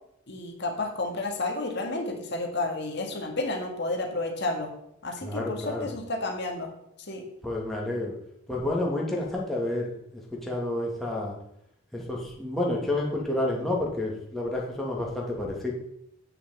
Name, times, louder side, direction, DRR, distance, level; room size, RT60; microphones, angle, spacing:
voice 1, 0.3-4.7 5.0-6.7 7.1-7.2, left 2 dB, 55° left, 2 dB, 1.8 m, -31 dB
voice 2, 5.2-5.9 7.4-8.2 8.5-9.9 10.3-11.3 11.9-15.7, left 1 dB, ahead, -4 dB, 2.4 m, -29 dB
8.4 x 6.7 x 8.1 m, 0.76 s
head